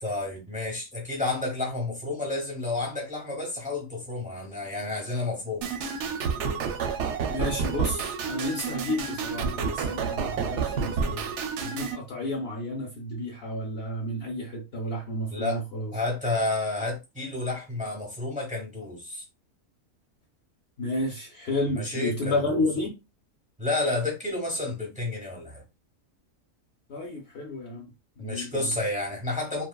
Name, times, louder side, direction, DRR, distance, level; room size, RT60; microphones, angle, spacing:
voice 1, 0.0-5.7 15.3-15.6 15.9-19.2 21.7-22.7 23.6-25.6 28.2-29.7, left 2 dB, 5° right, 0.7 m, -30 dB
sound 1, 5.6-12.0, right 6 dB, 70° right, 0.8 m, -29 dB
voice 2, 7.3-11.3 11.6-15.9 20.8-22.9 26.9-27.9 28.2-28.8, left 1 dB, 60° left, 0.7 m, -31 dB
3.0 x 2.1 x 2.2 m
omnidirectional pair, 1.4 m